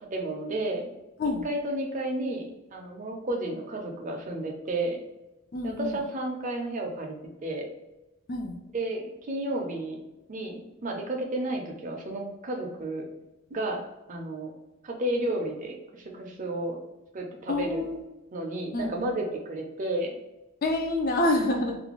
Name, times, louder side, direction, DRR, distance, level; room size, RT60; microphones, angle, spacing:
voice 1, 0.1-0.8 1.4-5.0 5.6-7.2 7.4-7.7 8.7-10.0 10.3-13.1 13.5-13.8 14.1-14.5 14.8-16.8 17.1-17.9 18.3-20.2, right 1 dB, 35° right, 1 dB, 0.4 m, -32 dB
voice 2, 5.5-6.0 8.3-8.5 17.5-18.0 18.7-19.1 20.6-21.8, left 2 dB, 40° left, 2 dB, 0.4 m, -27 dB
2.5 x 2.2 x 3.0 m, 1.0 s
head